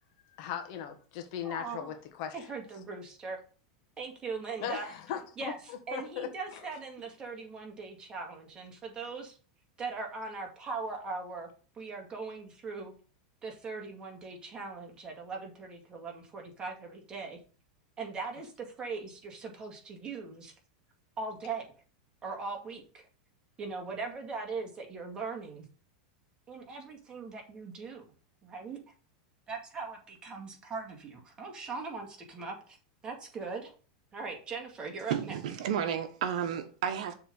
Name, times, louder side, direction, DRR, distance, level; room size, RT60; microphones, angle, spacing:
voice 1, 0.4-2.4 4.6-6.7, left 9 dB, 55° left, 1.4 m, -39 dB
voice 2, 1.4-1.9 2.3-3.4 4.0-4.9 5.4-5.6 5.9-9.3 9.8-12.9 13.4-17.4 18.0-20.5 21.2-21.7 22.2-23.1 23.6-25.7 26.5-28.0 28.4-28.8 29.5-32.8 33.0-33.7 34.1-35.4, right 4 dB, 25° right, 2.1 m, -40 dB
voice 3, 35.1-37.1, right 9 dB, 75° right, 1.0 m, -32 dB
6.9 x 3.8 x 5.4 m
supercardioid pair, 130°, 4 cm